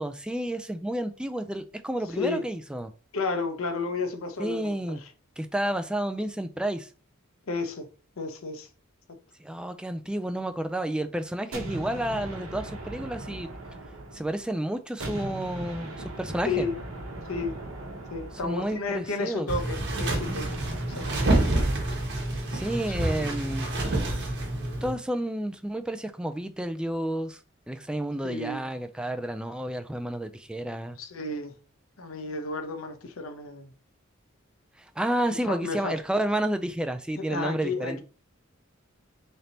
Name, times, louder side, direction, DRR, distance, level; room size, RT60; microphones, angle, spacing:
voice 1, 0.0-2.9 4.4-5.0 5.4-6.9 9.4-13.5 14.1-16.7 18.4-19.5 22.5-23.7 24.8-27.4 27.7-31.0 34.8-38.0, right 1 dB, 5° right, 0.3 m, -31 dB
voice 2, 2.2-2.5 3.1-5.0 7.5-7.9 8.2-8.7 9.1-9.2 16.4-16.8 17.3-17.6 18.1-20.6 21.0-21.1 22.8-23.3 28.2-28.6 31.0-31.5 32.0-33.7 35.3-36.0 37.2-38.0, left 3 dB, 80° left, 0.7 m, -32 dB
sound 1, 11.5-14.5 15.0-19.2 20.1-22.2, right 1 dB, 80° right, 0.9 m, -39 dB
sound 2, 19.5-24.9, right 1 dB, 55° right, 1.1 m, -28 dB
3.3 x 2.8 x 3.9 m
head